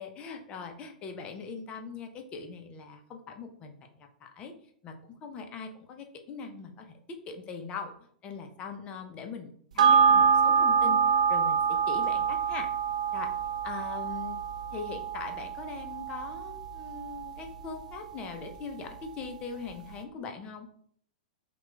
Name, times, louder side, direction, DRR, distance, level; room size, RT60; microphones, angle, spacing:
voice 1, 0.0-4.5 4.8-5.0 5.2-7.9 8.2-11.0 11.3-12.7 13.1-13.3 13.6-14.4 14.7-20.7, left 5 dB, 25° left, 5 dB, 0.5 m, -41 dB
sound 1, 9.8-18.5 18.9-19.0, right 7 dB, 65° right, 0.4 m, -26 dB
5.7 x 2.3 x 2.2 m, 0.63 s
figure-of-eight pair, 100°, 4 cm